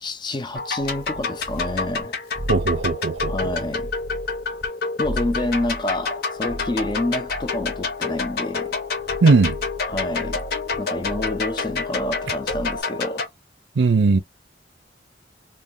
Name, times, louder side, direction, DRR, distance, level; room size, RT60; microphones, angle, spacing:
voice 1, 0.0-2.2 3.3-3.9 5.0-8.7 9.9-10.4 10.8-13.3, left 1 dB, 25° left, 0.4 m, -28 dB
sound 1, 0.6-13.3, left 4 dB, 60° left, 0.8 m, -28 dB
sound 2, 0.8-2.0 2.4-4.7 5.0-12.8, right 1 dB, 25° right, 0.5 m, -36 dB
voice 2, 2.5-3.5 9.2-9.6 13.8-14.2, right 4 dB, 80° right, 0.5 m, -18 dB
2.6 x 2.1 x 3.4 m
head